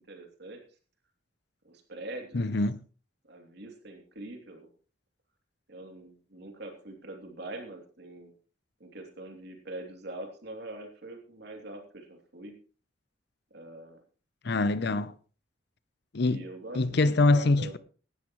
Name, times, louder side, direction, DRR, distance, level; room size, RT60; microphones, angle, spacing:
voice 1, 0.1-0.6 1.6-2.4 3.2-4.7 5.7-8.3 8.8-12.5 13.5-14.0 14.8-15.1 16.2-17.7, right 2 dB, 60° right, 3.0 m, -43 dB
voice 2, 2.3-2.8 14.4-15.1 16.1-16.4 16.7-17.8, left 2 dB, 60° left, 0.7 m, -24 dB
17.0 x 12.5 x 3.1 m
head